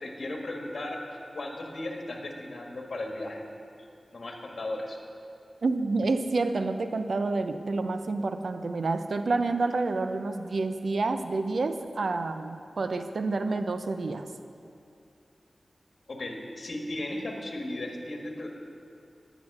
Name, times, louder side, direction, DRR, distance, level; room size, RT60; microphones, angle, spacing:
voice 1, 0.0-3.4 4.1-5.0 16.1-18.5, left 1 dB, 65° left, 2 dB, 1.4 m, -36 dB
voice 2, 5.6-14.3, right 3 dB, 75° right, 8 dB, 0.6 m, -28 dB
11.0 x 9.0 x 6.0 m, 2.5 s
wide cardioid pair, 85°, 0 cm